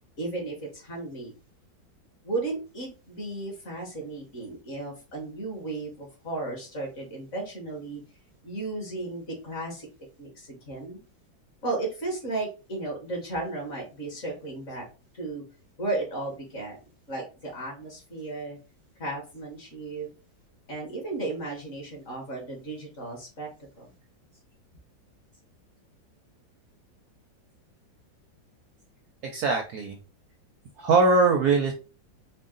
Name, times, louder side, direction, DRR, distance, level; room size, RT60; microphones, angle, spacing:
voice 1, 0.2-1.3 2.2-8.0 8.4-9.9 10.2-11.0 11.6-14.8 15.1-15.4 15.8-16.8 17.1-18.6 19.0-20.1 20.7-23.5 23.8-23.9, right 2 dB, 40° left, 0 dB, 1.5 m, -34 dB
voice 2, 29.2-30.0 30.8-31.7, right 3 dB, 70° right, 3 dB, 0.9 m, -22 dB
4.6 x 2.1 x 3.7 m, 0.33 s
omnidirectional pair, 2.1 m